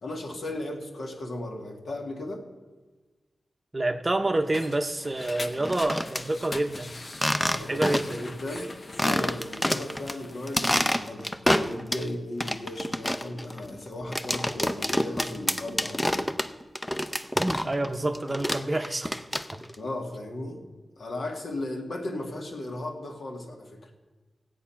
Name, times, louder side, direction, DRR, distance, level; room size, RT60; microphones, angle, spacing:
voice 1, 0.0-2.5 7.5-16.3 19.8-20.6 21.0-23.9, left 1 dB, 70° left, 1 dB, 1.9 m, -36 dB
voice 2, 3.7-6.9 7.7-8.2 17.3-19.1, right 2 dB, 25° right, 6 dB, 0.7 m, -28 dB
sound 1, 4.1-10.9, left 2 dB, 45° left, 0.8 m, -43 dB
sound 2, 5.5-6.2 7.1-8.2 8.6-8.7 9.0-10.1 10.5-12.1 12.4-17.9 18.1-19.7, left 1 dB, 10° left, 0.5 m, -27 dB
17.0 x 8.2 x 5.8 m, 1.3 s
wide cardioid pair, 105°, 0 cm